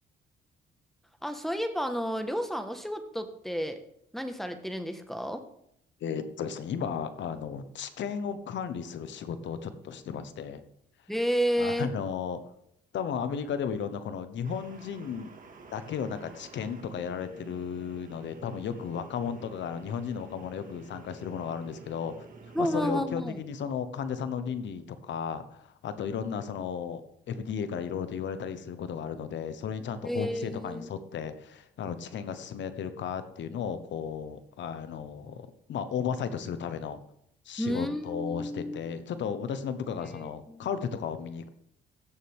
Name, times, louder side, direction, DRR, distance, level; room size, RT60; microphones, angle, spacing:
voice 1, 1.2-3.8 4.1-5.4 11.1-11.9 22.5-23.4 30.0-30.9 37.6-38.9 40.0-40.6, equal, ahead, 7 dB, 1.4 m, -31 dB
voice 2, 6.0-10.6 11.6-12.4 12.9-15.3 15.7-22.2 22.6-27.0 27.3-37.0 37.4-41.5, left 7 dB, 70° left, 11 dB, 1.1 m, -34 dB
sound 1, 14.4-22.9, right 4 dB, 45° right, 1.9 m, -50 dB
16.0 x 7.0 x 3.6 m, 0.72 s
cardioid pair, 90°, 20 cm